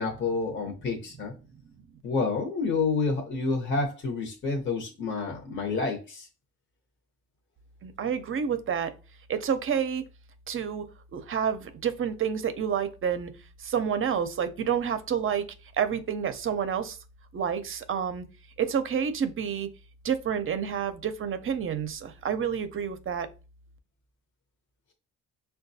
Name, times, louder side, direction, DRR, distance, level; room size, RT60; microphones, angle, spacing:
voice 1, 0.0-1.3 2.0-6.3, left 4 dB, 40° left, 0.9 m, -29 dB
voice 2, 7.8-8.9 9.3-10.0 10.5-10.8 11.1-13.3 13.6-15.5 15.8-17.0 17.3-18.3 18.6-19.7 20.0-23.3, right 7 dB, 45° right, 0.6 m, -29 dB
5.6 x 2.3 x 2.7 m
cardioid pair, 90°, 30 cm